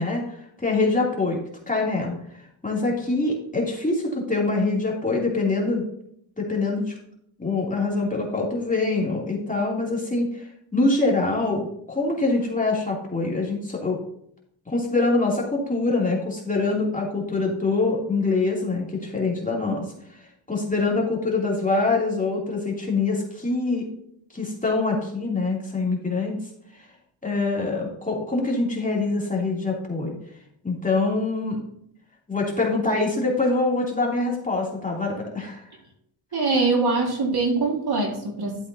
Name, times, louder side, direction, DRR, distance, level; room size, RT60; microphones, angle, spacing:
voice 1, 0.0-1.4 1.7-5.8 6.4-7.0 7.4-14.0 14.7-23.8 24.3-26.4 26.7-26.9 27.2-30.2 30.6-31.6 32.3-35.7, left 3 dB, 15° left, -3 dB, 2.9 m, -24 dB
voice 2, 36.3-38.6, right 3 dB, 50° right, 1 dB, 2.0 m, -23 dB
12.5 x 7.8 x 2.8 m, 0.71 s
cardioid pair, 100°, 50 cm